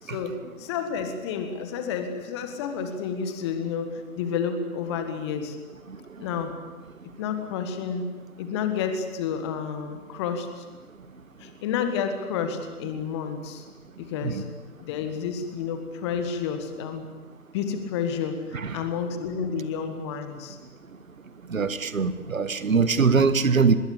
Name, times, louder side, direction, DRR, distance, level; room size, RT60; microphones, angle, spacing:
voice 1, 0.0-5.6 6.2-6.5 7.2-8.1 8.4-10.6 11.4-13.6 14.0-14.4 14.8-17.1 17.5-20.6, left 6 dB, 20° left, 7 dB, 1.7 m, -30 dB
voice 2, 21.5-23.8, right 5 dB, 60° right, 13 dB, 1.7 m, -22 dB
25.0 x 21.0 x 8.6 m, 1.3 s
figure-of-eight pair, 140°, 46 cm